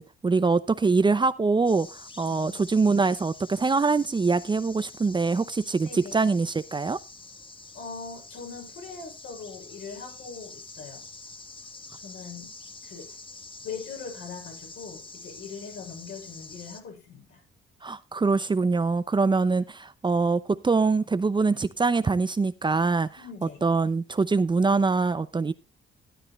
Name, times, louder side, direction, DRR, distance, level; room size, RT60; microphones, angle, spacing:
voice 1, 0.0-7.0 17.8-23.1 23.6-25.5, right 4 dB, 25° right, 0.7 m, -24 dB
sound 1, 1.7-16.8, left 3 dB, 25° left, 1.3 m, -46 dB
voice 2, 2.2-2.6 5.8-6.2 7.7-11.0 12.0-12.5 12.8-13.1 13.6-17.4 23.2-23.6, left 5 dB, 70° left, 6.3 m, -41 dB
12.5 x 11.0 x 3.2 m
cardioid pair, 90°, 20 cm